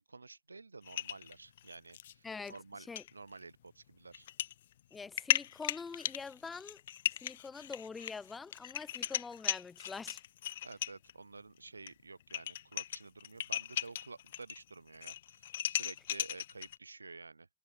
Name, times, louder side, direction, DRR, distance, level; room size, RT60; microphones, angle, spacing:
voice 1, 0.0-4.3 10.6-17.5, right 3 dB, 80° right, 6.2 m, -51 dB
sound 1, 0.9-2.1 2.5-2.6 3.0-3.1 4.1-4.5 4.9-11.1 11.9-12.0 12.2-14.6 14.9-16.8, left 11 dB, 60° left, 0.5 m, -37 dB
voice 2, 2.2-3.0 4.9-6.8 7.1-10.2, left 4 dB, 15° left, 5.6 m, -45 dB
figure-of-eight pair, 90°, 0 cm